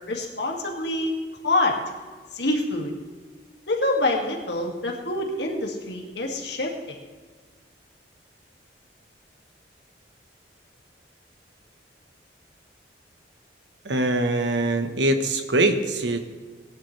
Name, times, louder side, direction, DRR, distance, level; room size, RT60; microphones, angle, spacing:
voice 1, 0.1-1.2 1.4-1.7 2.3-2.9 3.7-7.0, left 2 dB, 75° left, 0 dB, 2.3 m, -26 dB
voice 2, 13.8-16.2, right 2 dB, 90° right, 7 dB, 1.3 m, -23 dB
18.5 x 11.0 x 3.3 m, 1.5 s
head